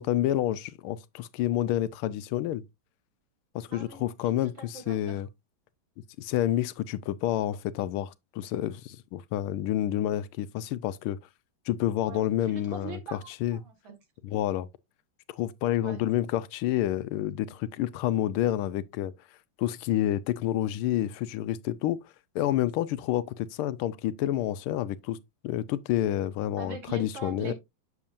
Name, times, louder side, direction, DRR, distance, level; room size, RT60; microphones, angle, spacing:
voice 1, 0.0-2.6 3.5-5.3 6.2-11.2 11.7-13.0 13.4-13.6 14.2-14.7 15.3-19.1 19.6-22.0 22.3-25.2 25.4-27.5, left 12 dB, 90° left, 1.5 m, -29 dB
voice 2, 3.7-5.2 12.0-13.9 15.8-16.0 26.6-27.5, right 5 dB, 65° right, 2.5 m, -43 dB
7.3 x 7.1 x 2.5 m
omnidirectional pair, 2.3 m